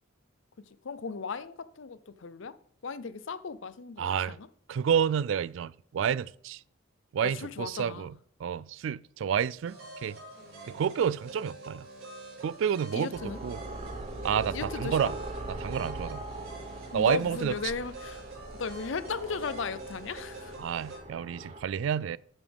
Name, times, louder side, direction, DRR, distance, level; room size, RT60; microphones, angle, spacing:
voice 1, 0.8-2.5 2.8-4.5 7.2-8.1 12.9-13.4 14.5-15.1 16.9-18.2 18.6-20.5, left 5 dB, 70° left, 0.6 m, -36 dB
voice 2, 4.0-4.4 4.7-6.6 7.1-10.2 10.7-11.9 12.4-13.6 14.2-15.2 15.6-16.2 16.9-17.5 20.6-22.2, right 8 dB, 70° right, 0.3 m, -29 dB
sound 1, 9.6-21.0, right 2 dB, 90° right, 4.4 m, -47 dB
sound 2, 13.1-21.6, right 1 dB, 30° right, 1.2 m, -41 dB
10.5 x 7.3 x 3.5 m
head